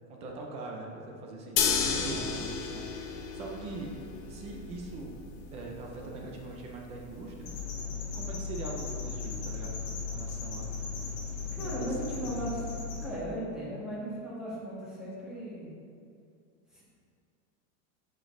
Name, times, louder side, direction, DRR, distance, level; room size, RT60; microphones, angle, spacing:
voice 1, 0.1-4.0 4.3-5.2 5.5-7.6 8.1-10.7 11.6-12.4, right 2 dB, 20° right, 0 dB, 0.3 m, -42 dB
sound 1, 1.6-7.6, left 6 dB, 55° left, 0.9 m, -34 dB
sound 2, 7.4-13.1, left 5 dB, 40° left, 1.4 m, -37 dB
voice 2, 11.5-15.7 16.7-16.8, right 1 dB, ahead, -9 dB, 1.6 m, -37 dB
8.6 x 5.3 x 3.7 m, 2.4 s
supercardioid pair, 175°, 39 cm